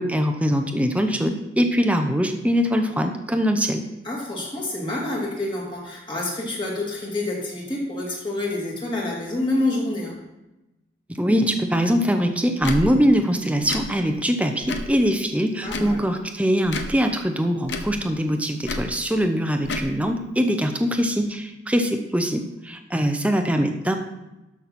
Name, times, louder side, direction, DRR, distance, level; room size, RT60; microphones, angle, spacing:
voice 1, 0.0-3.8 11.1-24.0, equal, 5° right, 5 dB, 0.7 m, -22 dB
voice 2, 4.0-10.2 15.6-16.1, left 2 dB, 25° left, -3 dB, 2.5 m, -27 dB
Tick / Tick-tock, 12.6-12.8 13.6-13.9 14.6-14.9 15.6-16.0 16.6-16.9 17.6-17.9 18.6-18.9 19.6-19.9, left 2 dB, 75° left, 1.0 m, -30 dB
12.5 x 6.1 x 4.3 m, 0.98 s
head